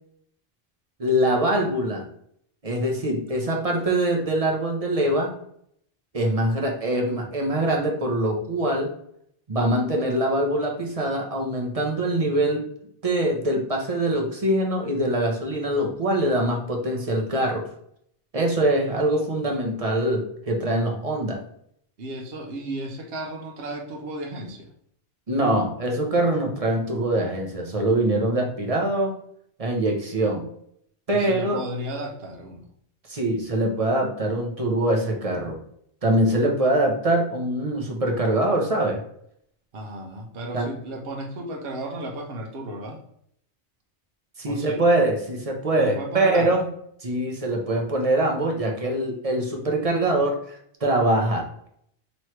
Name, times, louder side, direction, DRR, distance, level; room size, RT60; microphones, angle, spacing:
voice 1, 1.0-2.0 2.6-5.3 6.1-8.9 9.5-12.6 13.0-17.7 18.3-21.4 25.3-29.2 29.6-30.4 31.1-31.6 33.1-35.6 36.0-39.0 40.5-40.7 44.4-46.6 47.0-51.7, right 1 dB, 35° right, 1 dB, 0.7 m, -23 dB
voice 2, 22.0-24.7 31.1-32.6 39.7-43.0 44.4-44.8 45.8-46.5, right 1 dB, 60° right, 1 dB, 1.0 m, -34 dB
3.1 x 3.1 x 4.4 m, 0.69 s
omnidirectional pair, 1.1 m